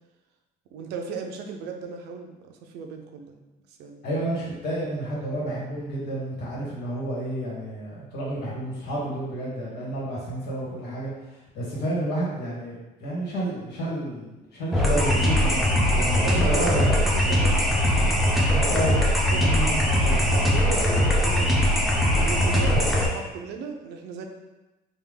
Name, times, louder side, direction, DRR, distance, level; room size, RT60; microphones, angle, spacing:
voice 1, 0.7-3.3 3.8-4.1 16.2-17.6 19.3-19.6 20.3-21.6 22.2-22.7 23.1-24.3, right 5 dB, 85° right, 4 dB, 0.5 m, -35 dB
voice 2, 4.0-11.1 11.5-17.0 18.5-19.1 19.3-20.3 22.5-22.8, right 1 dB, 80° left, -5 dB, 1.4 m, -30 dB
sound 1, 14.7-23.1, left 1 dB, ahead, 0.6 m, -21 dB
3.4 x 2.3 x 3.4 m, 1.0 s
cardioid pair, 110°, 17 cm